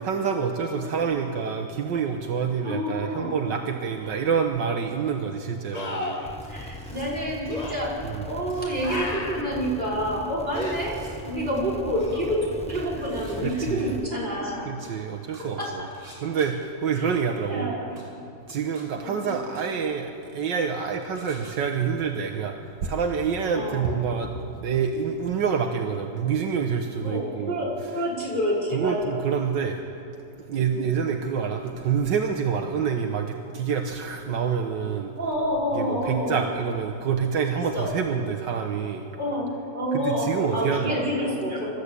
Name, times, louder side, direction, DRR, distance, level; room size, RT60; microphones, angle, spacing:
voice 1, 0.0-6.7 8.0-8.3 13.4-14.0 14.7-15.9 16.2-17.8 18.5-27.7 28.7-29.8 30.5-35.1 35.7-39.1 39.9-41.1, right 6 dB, 75° right, 4 dB, 1.7 m, -27 dB
voice 2, 0.6-1.0 2.6-3.4 5.7-5.8 6.5-7.9 8.2-11.0 11.2-14.8 15.4-15.9 17.0-17.1 17.4-18.0 19.0-19.3 23.5-23.9 27.0-29.0 30.7-30.9 35.2-36.4 37.7-37.9 39.2-41.8, equal, 25° right, -5 dB, 5.3 m, -28 dB
sound 1, 4.1-4.2 5.7-6.4 7.5-7.8 8.8-9.6 10.5-10.8 12.0-12.6 15.8-15.9, left 2 dB, 25° left, 1.4 m, -33 dB
sound 2, 6.2-14.1, equal, 10° left, 0.4 m, -40 dB
sound 3, 6.4-7.1 8.5-9.0 10.6-11.1 12.7-13.8 14.8-14.9 15.3-16.5 18.0-18.1 18.5-18.8 19.3-19.6 21.2-21.5, right 1 dB, 55° right, 6.0 m, -50 dB
25.5 x 13.5 x 8.4 m, 2.6 s
omnidirectional pair, 2.0 m